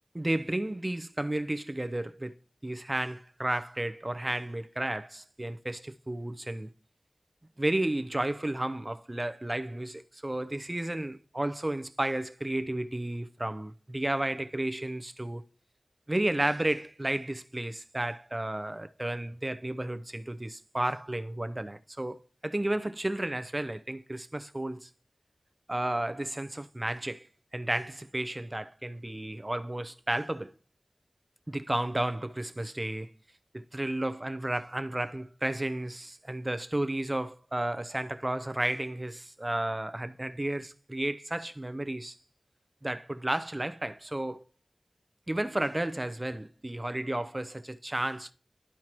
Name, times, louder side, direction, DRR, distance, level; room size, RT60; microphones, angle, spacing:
voice 1, 0.1-2.3 2.6-6.7 7.6-15.4 16.1-24.9 25.7-27.3 27.5-30.5 31.5-33.1 33.5-42.2 42.8-44.4 45.3-48.3, right 1 dB, 30° right, 0.6 m, -32 dB
12.5 x 4.6 x 3.0 m
wide cardioid pair, 45°, 0 cm